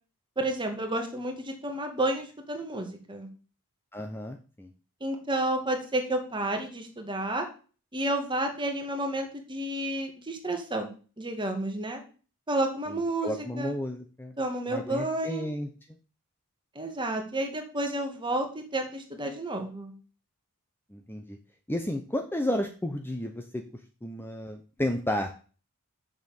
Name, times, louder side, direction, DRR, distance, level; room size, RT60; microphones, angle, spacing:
voice 1, 0.4-3.3 5.0-7.5 7.9-12.0 12.5-13.8 14.4-15.5 16.8-19.9, right 1 dB, 20° right, 4 dB, 2.0 m, -31 dB
voice 2, 3.9-4.7 13.2-14.3 14.7-15.7 20.9-21.4 21.7-23.6 24.0-25.5, left 1 dB, 10° left, 5 dB, 0.8 m, -32 dB
6.8 x 6.6 x 7.2 m, 0.38 s
head